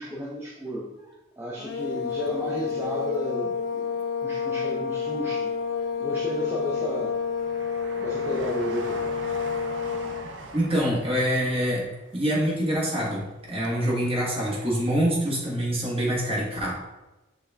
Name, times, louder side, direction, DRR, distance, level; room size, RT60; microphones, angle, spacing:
voice 1, 0.0-3.9 4.2-5.5 6.0-7.1 8.0-9.0, equal, 10° right, -4 dB, 0.4 m, -33 dB
sound 1, 1.6-10.3, left 6 dB, 75° left, 0.3 m, -29 dB
Train, 1.8-3.1 3.5-4.5 5.0-13.8 14.0-14.1, right 2 dB, 70° right, 0.5 m, -43 dB
voice 2, 10.5-11.9 12.1-16.7, equal, 30° right, -5 dB, 1.2 m, -25 dB
5.2 x 2.2 x 3.3 m, 1.0 s
head